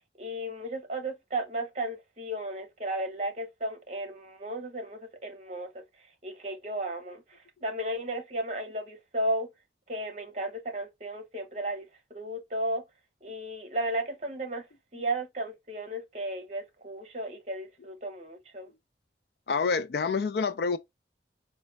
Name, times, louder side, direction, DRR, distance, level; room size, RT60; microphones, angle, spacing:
voice 1, 0.2-5.8 6.2-9.5 9.9-12.8 13.2-14.7 14.9-18.7, right 1 dB, 40° right, 0.9 m, -34 dB
voice 2, 19.5-20.8, left 5 dB, 65° left, 0.4 m, -27 dB
4.1 x 2.2 x 3.3 m
head